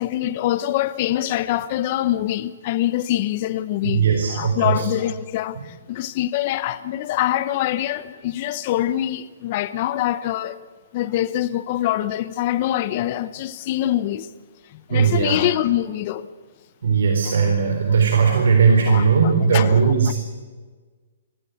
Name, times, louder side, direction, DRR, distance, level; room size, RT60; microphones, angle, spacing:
voice 1, 0.0-4.0 4.3-10.6 10.9-14.3 14.7-16.3 18.3-18.4 18.9-19.8 20.1-20.2, left 13 dB, 35° left, 1.0 m, -24 dB
voice 2, 3.8-4.9 14.9-15.4 16.8-20.1, right 5 dB, 70° right, 3.9 m, -18 dB
23.5 x 15.5 x 9.4 m
hypercardioid pair, 160°, 0 cm